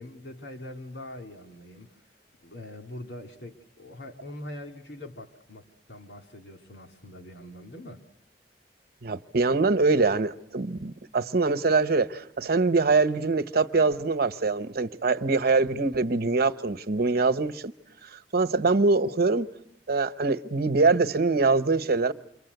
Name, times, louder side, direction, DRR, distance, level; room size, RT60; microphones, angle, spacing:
voice 1, 0.0-2.0 2.4-8.0, left 1 dB, 75° left, 2.6 m, -43 dB
voice 2, 9.0-17.7 18.1-19.5 19.9-22.1, right 3 dB, 60° right, 1.0 m, -24 dB
28.0 x 24.0 x 8.1 m
head